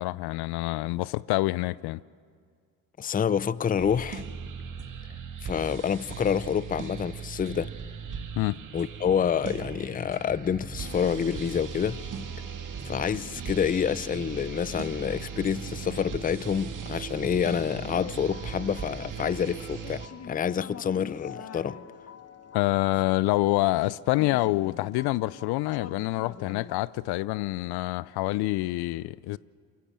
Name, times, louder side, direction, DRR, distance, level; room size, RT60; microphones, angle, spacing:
voice 1, 0.0-2.0 8.4-8.6 22.5-29.4, left 19 dB, 70° left, 0.5 m, -27 dB
voice 2, 3.0-4.2 5.4-7.7 8.7-12.0 12.9-21.8, left 8 dB, 20° left, 0.5 m, -28 dB
sound 1, 3.8-20.1, right 6 dB, 50° right, 2.0 m, -38 dB
sound 2, 17.5-26.8, left 7 dB, 40° left, 1.0 m, -45 dB
23.0 x 14.5 x 8.8 m
supercardioid pair, 65°, 40 cm